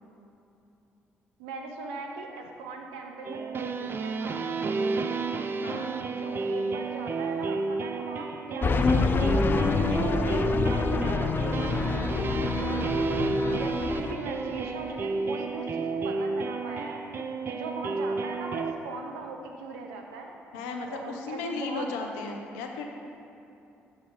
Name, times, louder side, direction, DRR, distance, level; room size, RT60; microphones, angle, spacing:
voice 1, 1.4-5.3 6.1-10.2 10.6-11.9 12.4-13.1 13.5-17.1 17.5-20.3 20.9-21.9, right 3 dB, 75° right, 2 dB, 0.7 m, -39 dB
sound 1, 3.2-18.7, right 4 dB, 40° right, 0.4 m, -31 dB
voice 2, 5.6-5.9 20.5-22.9, left 4 dB, 75° left, 3 dB, 0.7 m, -35 dB
sound 2, 8.6-14.1, left 4 dB, 35° left, 0.5 m, -26 dB
7.1 x 5.5 x 4.9 m, 2.8 s
hypercardioid pair, 45°, 6 cm